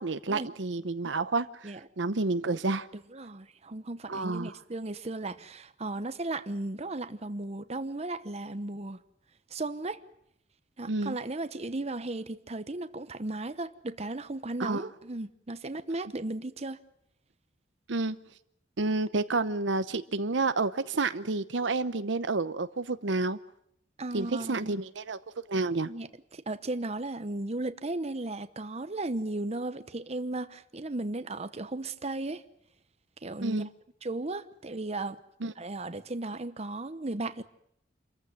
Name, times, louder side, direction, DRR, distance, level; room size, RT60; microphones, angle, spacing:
voice 1, 0.0-2.9 4.1-4.5 10.9-11.2 14.6-14.9 17.9-18.2 18.8-23.4 24.1-25.2 25.5-25.9 33.4-33.7 35.4-35.5, right 3 dB, 80° right, 0.9 m, -30 dB
voice 2, 2.9-9.0 9.5-10.0 10.8-16.8 24.0-24.8 25.9-32.4 33.2-33.6 34.0-35.2 35.6-37.4, right 2 dB, 35° right, 1.0 m, -35 dB
27.0 x 14.5 x 9.5 m
head